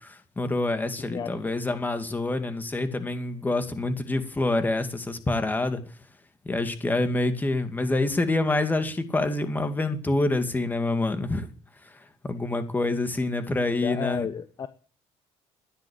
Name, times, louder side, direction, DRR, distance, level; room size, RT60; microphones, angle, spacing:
voice 1, 0.0-5.8 6.4-11.5 11.8-14.3, left 2 dB, 15° left, 8 dB, 2.4 m, -27 dB
voice 2, 13.8-14.7, left 7 dB, 35° left, 11 dB, 1.0 m, -32 dB
15.5 x 10.5 x 8.7 m, 0.40 s
cardioid pair, 145°, 12 cm